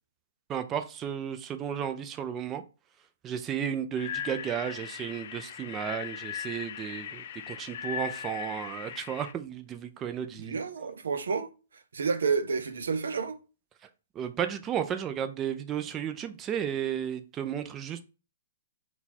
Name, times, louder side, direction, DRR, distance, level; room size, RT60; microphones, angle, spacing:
voice 1, 0.5-2.6 3.2-10.6 14.2-18.0, right 9 dB, 20° right, 0.4 m, -33 dB
sound 1, 3.9-9.3, left 9 dB, 55° left, 0.3 m, -39 dB
voice 2, 10.3-11.5 11.9-13.4, right 5 dB, 80° right, 0.5 m, -30 dB
3.9 x 2.3 x 4.1 m
hypercardioid pair, 135°, 0 cm